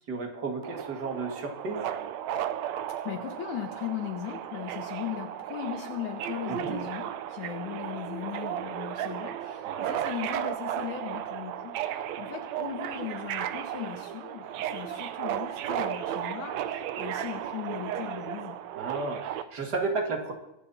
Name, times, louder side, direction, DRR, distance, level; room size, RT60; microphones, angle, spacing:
voice 1, 0.1-1.9 6.5-6.7 9.6-9.9 18.8-20.3, right 3 dB, 35° right, 2 dB, 2.5 m, -33 dB
Subway metro underground, 0.6-19.4, right 10 dB, 75° right, 1.8 m, -34 dB
voice 2, 3.0-11.8 12.2-18.6, left 11 dB, 70° left, 4 dB, 2.5 m, -38 dB
24.0 x 10.0 x 4.3 m, 0.87 s
omnidirectional pair, 3.7 m